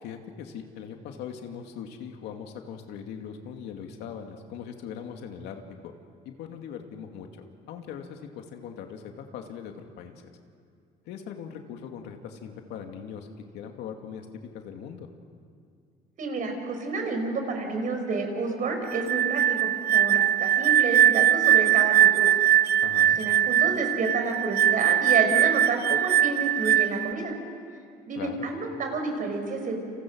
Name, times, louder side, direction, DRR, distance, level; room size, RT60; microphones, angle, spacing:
voice 1, 0.0-5.9 6.2-10.2 11.1-13.3 13.5-15.1 22.8-23.2 28.2-28.5, left 7 dB, 85° left, 4 dB, 2.5 m, -40 dB
voice 2, 16.2-22.4 23.2-27.3 28.1-29.8, right 3 dB, 50° right, 4 dB, 5.3 m, -30 dB
sound 1, 18.9-27.1, right 11 dB, 70° right, 0.7 m, -21 dB
29.0 x 27.5 x 6.4 m, 2.3 s
cardioid pair, 110°, 17 cm